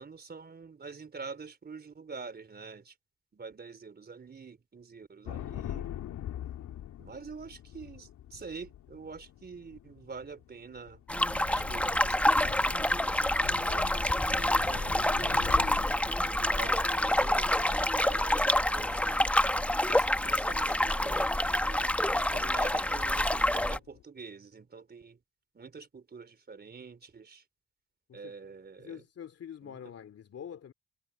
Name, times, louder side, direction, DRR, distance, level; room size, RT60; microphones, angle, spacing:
voice 1, 0.0-2.9 3.3-5.9 7.0-11.0 11.5-13.9 14.4-15.5 15.9-19.2 19.9-21.3 21.7-21.9 22.3-25.2 25.5-27.4 28.1-29.0 29.6-29.8, right 4 dB, 35° right, 3.8 m, -46 dB
sound 1, 5.3-22.9 23.2-24.0, left 11 dB, 75° left, 2.9 m, -44 dB
sound 2, 11.1-23.8, left 1 dB, 5° left, 0.9 m, -27 dB
voice 2, 14.4-15.4 22.1-22.5 28.1-30.7, left 8 dB, 55° left, 2.6 m, -47 dB
cardioid pair, 90°, 30 cm